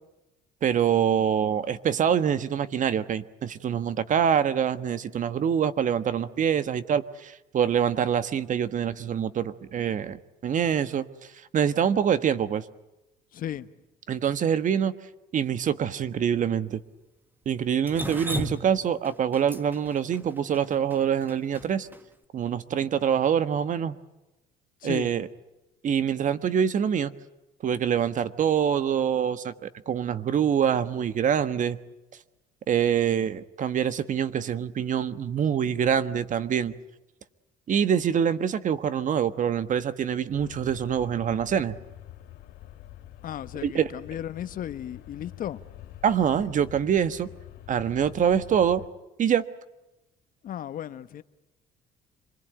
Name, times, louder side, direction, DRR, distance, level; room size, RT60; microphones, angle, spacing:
voice 1, 0.6-11.1 11.5-12.6 14.1-14.9 15.3-16.8 17.4-21.9 22.3-24.0 24.8-25.3 25.8-27.1 27.6-31.8 32.7-36.7 37.7-41.8 43.6-43.9 46.0-47.3 47.7-48.8 49.2-49.4, right 8 dB, 50° right, 1.4 m, -25 dB
voice 2, 13.3-13.7 24.8-25.1 43.2-45.6 50.4-51.2, left 10 dB, 55° left, 1.1 m, -35 dB
Drip, 17.9-22.0, equal, 10° right, 1.8 m, -35 dB
sound 1, 40.3-48.9, left 13 dB, 90° left, 2.7 m, -46 dB
27.0 x 21.5 x 9.1 m
cardioid pair, 110°, 17 cm